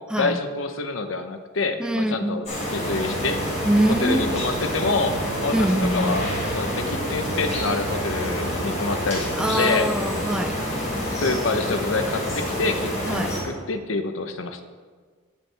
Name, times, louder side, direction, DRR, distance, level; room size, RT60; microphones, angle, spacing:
voice 1, 0.2-2.4 2.7-3.4 3.9-9.9 11.1-14.6, left 3 dB, 80° left, 0.9 m, -27 dB
voice 2, 1.8-2.4 3.7-4.4 5.5-6.3 9.3-10.6 13.1-13.4, right 1 dB, 5° right, 0.4 m, -24 dB
sound 1, 2.4-13.4, left 1 dB, 35° left, 3.9 m, -28 dB
sound 2, 2.8-13.6, right 4 dB, 65° right, 0.5 m, -38 dB
19.0 x 7.4 x 3.5 m
head